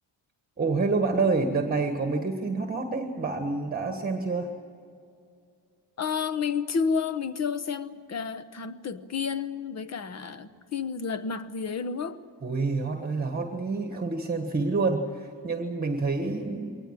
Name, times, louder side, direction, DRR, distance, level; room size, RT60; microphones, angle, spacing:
voice 1, 0.6-4.5 12.4-16.8, right 3 dB, 20° right, 5 dB, 1.3 m, -28 dB
voice 2, 6.0-12.2, left 6 dB, 40° left, 12 dB, 1.0 m, -30 dB
23.0 x 19.5 x 9.1 m, 2.4 s
wide cardioid pair, 180°, 42 cm